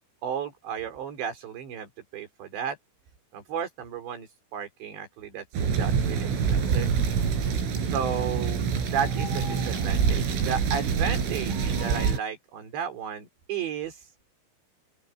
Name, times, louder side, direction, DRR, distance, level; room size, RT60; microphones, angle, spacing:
voice 1, 0.2-2.8 3.3-6.9 7.9-8.6 8.9-14.1, right 8 dB, 65° right, 6.2 m, -33 dB
sound 1, 5.5-12.2, right 6 dB, 90° right, 7.9 m, -26 dB
open air
omnidirectional pair, 5.6 m